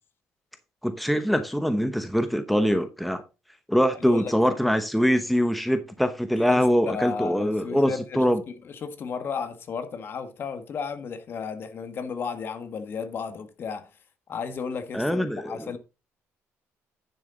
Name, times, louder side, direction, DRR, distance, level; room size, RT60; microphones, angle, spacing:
voice 1, 0.8-3.2 3.7-8.4 14.9-15.8, equal, ahead, 0.9 m, -23 dB
voice 2, 3.9-4.6 6.3-13.9 14.3-15.8, left 5 dB, 45° left, 1.6 m, -34 dB
10.0 x 6.9 x 3.9 m
cardioid pair, 125°, 5 cm